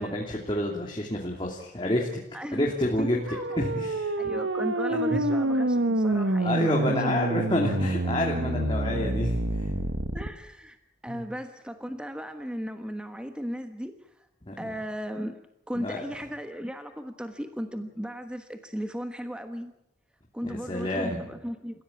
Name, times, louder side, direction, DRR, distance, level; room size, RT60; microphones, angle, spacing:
voice 1, 0.0-2.2 2.5-3.2 3.6-4.1 5.1-5.2 6.4-9.7 11.1-11.2 14.4-14.7 15.8-16.0 20.4-21.2, left 1 dB, 25° left, -1 dB, 2.9 m, -29 dB
voice 2, 2.3-2.7 3.0-3.7 4.2-7.1 8.4-8.5 10.1-10.8 11.0-14.3 14.6-15.4 15.7-19.7 20.3-21.8, equal, 5° right, 7 dB, 1.3 m, -36 dB
sound 1, 3.2-10.3, right 1 dB, 90° right, 1.5 m, -27 dB
29.5 x 16.0 x 8.6 m, 0.84 s
head